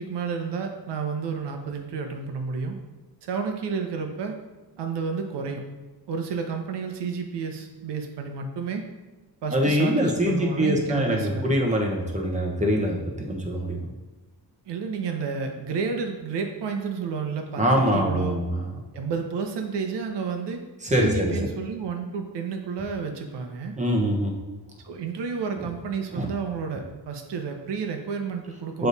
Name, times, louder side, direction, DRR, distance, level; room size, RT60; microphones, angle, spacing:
voice 1, 0.0-2.8 3.2-4.4 4.8-5.6 6.1-8.9 9.4-11.5 14.7-17.6 17.9-18.4 18.9-20.6 21.0-23.7 24.8-28.9, right 5 dB, 80° right, 4 dB, 1.0 m, -31 dB
voice 2, 9.5-13.8 17.6-18.7 20.8-21.3 23.8-24.3 26.1-26.3 28.8-28.9, equal, 15° right, -1 dB, 1.2 m, -23 dB
7.0 x 3.4 x 4.0 m, 1.2 s
cardioid pair, 120°, 41 cm